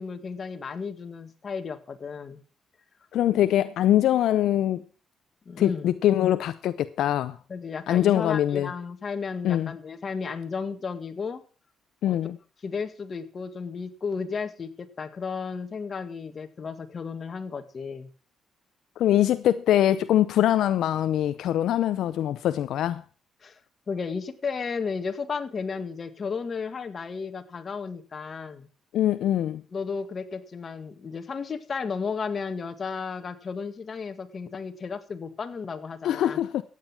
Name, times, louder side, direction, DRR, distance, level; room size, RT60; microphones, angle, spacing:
voice 1, 0.0-2.4 5.5-5.9 7.5-11.4 12.0-12.2 12.6-18.1 23.4-23.6 23.9-28.7 29.7-36.4, left 5 dB, 40° left, 1.9 m, -33 dB
voice 2, 3.1-4.8 5.6-7.4 7.9-8.7 9.4-9.7 12.0-12.4 19.0-23.0 28.9-29.6 36.0-36.6, left 12 dB, 80° left, 0.6 m, -23 dB
14.5 x 9.3 x 6.0 m
cardioid pair, 90°, 0 cm